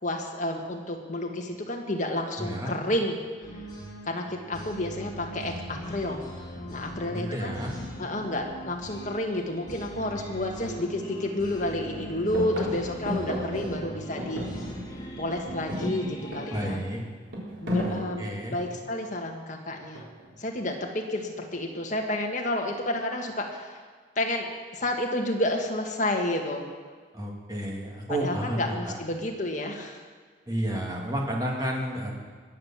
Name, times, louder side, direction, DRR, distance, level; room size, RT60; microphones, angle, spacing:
voice 1, 0.0-3.2 4.0-6.2 6.5-7.7 8.0-14.4 15.2-16.8 17.6-18.2 18.5-20.0 20.4-23.8 24.1-26.6 28.1-30.0, left 1 dB, 40° left, 1 dB, 1.8 m, -30 dB
voice 2, 2.4-2.7 7.1-7.7 16.5-17.0 17.8-18.5 27.1-28.9 30.5-32.1, equal, 20° right, -1 dB, 2.5 m, -31 dB
sound 1, 3.4-16.6, equal, 20° left, 3.7 m, -40 dB
sound 2, 10.6-10.7 11.1-11.6 11.9-15.1 15.4-19.0 19.9-20.4, equal, 80° right, 3.8 m, -34 dB
20.5 x 7.5 x 7.5 m, 1.6 s
head